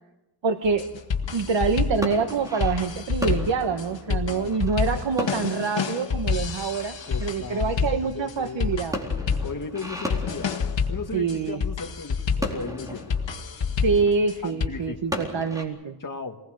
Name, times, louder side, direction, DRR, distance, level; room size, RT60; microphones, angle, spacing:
voice 1, 0.4-0.9 1.3-6.9 7.2-9.0 11.1-11.6 13.8-16.0, right 5 dB, 90° right, 6 dB, 1.4 m, -25 dB
sound 1, 0.6-14.7, left 5 dB, 85° left, 1.9 m, -28 dB
sound 2, 0.6-15.6, left 1 dB, 10° right, 4.2 m, -37 dB
voice 2, 4.1-5.0 7.1-8.8 9.4-10.5 10.9-13.3 14.0-14.1 14.4-15.0 16.0-16.4, left 5 dB, 45° left, 4 dB, 2.1 m, -36 dB
28.5 x 20.5 x 6.5 m, 0.93 s
wide cardioid pair, 180°, 43 cm